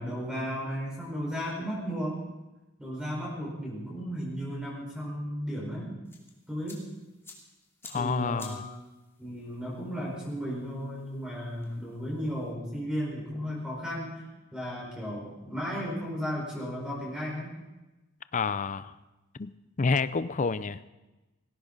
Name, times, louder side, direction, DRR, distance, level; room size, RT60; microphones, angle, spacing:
voice 1, 0.0-2.2 2.8-5.9 6.5-6.9 7.9-8.6 9.2-14.1 14.5-17.5, equal, 5° right, -5 dB, 4.9 m, -34 dB
sound 1, 6.0-12.5, left 3 dB, 10° left, 2.8 m, -53 dB
voice 2, 7.8-8.6 18.3-18.9 19.4-20.8, left 4 dB, 40° left, 15 dB, 0.5 m, -29 dB
19.0 x 16.5 x 4.0 m, 1.1 s
head